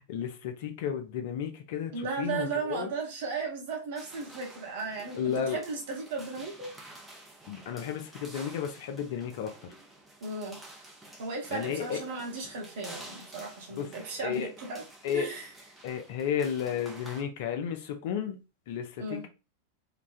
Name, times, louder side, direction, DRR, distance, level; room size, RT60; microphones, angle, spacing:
voice 1, 0.1-1.9 2.2-2.9 5.2-5.6 7.5-9.5 11.5-12.0 13.7-13.9 14.2-14.5 15.0-15.3 15.8-19.3, left 8 dB, 50° left, 0.4 m, -33 dB
voice 2, 1.9-6.7 10.2-10.6 11.2-14.8 15.1-15.5 19.0-19.3, right 4 dB, 50° right, 0.9 m, -35 dB
sound 1, 4.0-17.2, right 2 dB, 10° right, 0.6 m, -50 dB
2.4 x 2.2 x 2.4 m
figure-of-eight pair, 90°, 0 cm